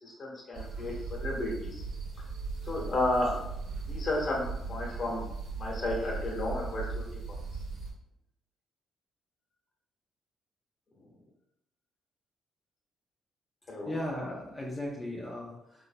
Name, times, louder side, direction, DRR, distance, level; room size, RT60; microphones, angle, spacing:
voice 1, 0.0-1.8 2.6-3.3 3.9-5.2 5.6-7.0 13.7-13.9, left 2 dB, 45° left, -3 dB, 1.3 m, -32 dB
sound 1, 0.5-7.9, right 4 dB, 80° right, 1.3 m, -38 dB
voice 2, 13.8-15.9, left 1 dB, 20° left, -4 dB, 0.7 m, -37 dB
3.9 x 2.9 x 2.2 m, 0.79 s
cardioid pair, 90°, 0 cm